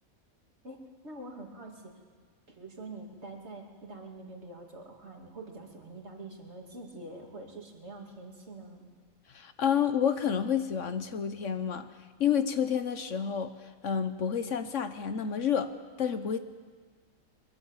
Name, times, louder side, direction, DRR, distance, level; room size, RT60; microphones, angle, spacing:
voice 1, 0.6-1.9 2.5-8.9, right 2 dB, 50° right, 1 dB, 2.9 m, -45 dB
voice 2, 9.3-11.9 12.2-16.4, left 8 dB, 60° left, 10 dB, 1.2 m, -29 dB
22.5 x 22.0 x 7.2 m, 1.5 s
omnidirectional pair, 1.5 m